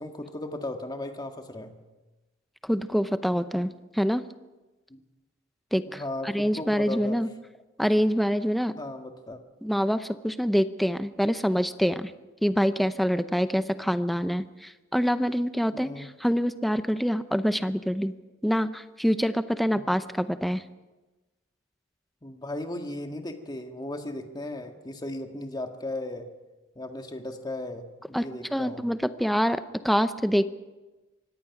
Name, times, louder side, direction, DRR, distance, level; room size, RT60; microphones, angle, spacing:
voice 1, 0.0-1.8 4.9-5.0 5.9-7.2 8.8-9.4 15.7-16.1 19.7-19.8 22.2-26.3 26.8-28.9, left 1 dB, 20° left, 5 dB, 1.8 m, -36 dB
voice 2, 2.6-4.2 5.7-7.3 7.8-8.7 9.6-12.1 12.4-18.1 18.4-20.6 28.1-28.3 28.5-30.5, equal, ahead, 11 dB, 0.7 m, -26 dB
24.5 x 17.5 x 6.0 m, 1.1 s
head